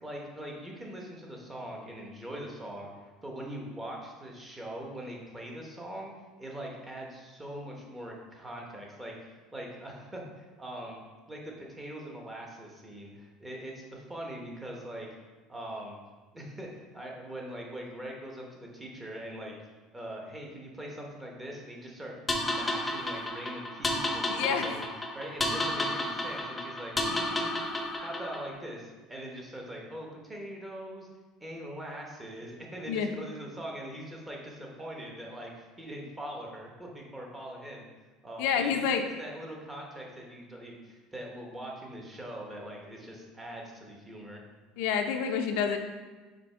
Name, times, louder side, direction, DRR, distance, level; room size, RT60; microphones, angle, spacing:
voice 1, 0.0-6.1 6.4-11.0 11.3-15.1 15.5-16.0 16.3-19.5 19.9-27.5 28.0-31.1 31.4-37.9 38.2-38.8 39.2-44.4, right 1 dB, 10° right, -1 dB, 1.0 m, -42 dB
sound 1, 22.3-28.5, left 1 dB, 10° left, 0.6 m, -32 dB
voice 2, 24.3-24.7 32.9-33.1 38.4-39.0 44.8-45.8, left 7 dB, 70° left, 5 dB, 0.6 m, -28 dB
5.1 x 4.5 x 4.4 m, 1.3 s
cardioid pair, 160°, 0 cm